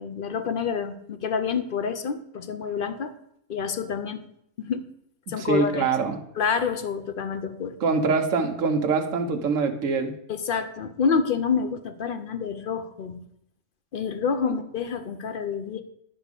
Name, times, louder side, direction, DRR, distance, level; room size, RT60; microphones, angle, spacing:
voice 1, 0.0-3.1 3.5-4.2 4.6-4.8 5.3-6.0 6.4-7.8 10.3-13.3 13.9-15.8, left 6 dB, 55° left, 9 dB, 0.6 m, -28 dB
voice 2, 5.4-6.2 7.8-10.1 14.4-14.5, right 4 dB, 65° right, 4 dB, 1.3 m, -24 dB
10.5 x 3.6 x 6.7 m, 0.72 s
omnidirectional pair, 1.5 m